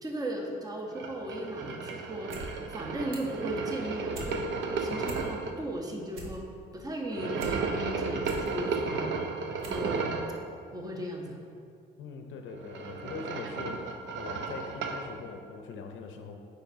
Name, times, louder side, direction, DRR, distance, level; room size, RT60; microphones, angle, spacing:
voice 1, 0.0-2.3 2.7-4.4 4.8-6.4 6.7-9.1 9.6-10.2 10.7-11.4, right 1 dB, 20° right, 1 dB, 0.8 m, -36 dB
sound 1, 1.0-5.5 7.1-10.4 12.5-15.1, right 4 dB, 70° right, 0.6 m, -34 dB
sound 2, 2.3-2.5 2.8-3.4 3.8-4.3 4.7-4.8 5.0-5.6 5.9-7.6 8.0-8.5 9.0-9.1 9.6-9.9 10.2-10.3, right 1 dB, 85° right, 1.0 m, -43 dB
voice 2, 12.0-16.3, left 5 dB, 85° left, 4 dB, 0.6 m, -42 dB
8.8 x 5.1 x 2.7 m, 2.3 s
cardioid pair, 90°, 20 cm